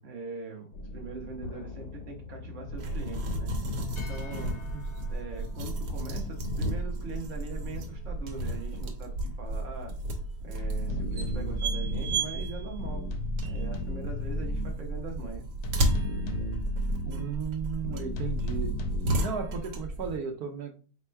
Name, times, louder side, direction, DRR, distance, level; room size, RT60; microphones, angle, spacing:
voice 1, 0.0-3.5 3.9-4.6 5.1-10.0 10.4-13.0 13.4-15.5, right 4 dB, 35° right, 0 dB, 1.0 m, -41 dB
sound 1, 0.7-5.7 8.4-8.5 8.7-8.8 10.6-12.2 12.8-14.7 15.6-17.3 17.8-19.1, left 1 dB, 75° left, 1.1 m, -35 dB
sound 2, 2.8-20.2, right 1 dB, 85° right, 1.4 m, -33 dB
voice 2, 17.0-18.7 19.2-20.7, right 6 dB, 70° right, 2 dB, 1.1 m, -35 dB
4.3 x 2.2 x 4.5 m, 0.38 s
omnidirectional pair, 1.7 m